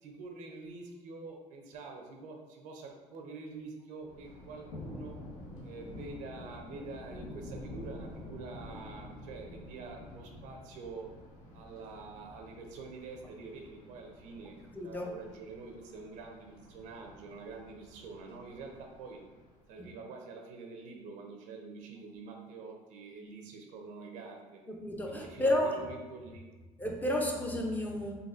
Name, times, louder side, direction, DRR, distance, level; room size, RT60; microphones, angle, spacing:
voice 1, 0.0-5.2 5.6-11.1 11.5-14.6 14.8-19.2 19.7-24.6 25.1-26.5, right 4 dB, 80° right, 2 dB, 0.6 m, -46 dB
Thunder, 4.0-19.9, left 1 dB, 80° left, 0.8 m, -49 dB
voice 2, 14.7-15.1 19.8-19.9 24.8-25.8 26.8-28.1, left 1 dB, 15° left, 0 dB, 0.5 m, -31 dB
3.9 x 2.6 x 2.5 m, 1.3 s
cardioid pair, 105°, 13 cm